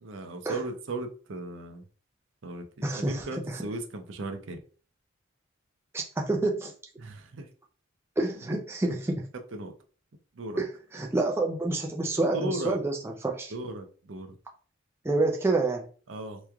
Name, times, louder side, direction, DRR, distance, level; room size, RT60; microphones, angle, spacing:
voice 1, 0.0-1.8 2.4-4.6 7.0-7.5 8.8-8.9 9.5-9.7 10.4-10.6 12.2-12.8 13.5-14.3 16.1-16.4, right 2 dB, 70° right, 6 dB, 0.5 m, -36 dB
voice 2, 2.8-3.7 5.9-6.7 8.2-9.3 10.6-13.5 15.0-15.9, right 2 dB, 10° right, 1 dB, 0.4 m, -28 dB
3.4 x 3.0 x 2.3 m, 0.41 s
head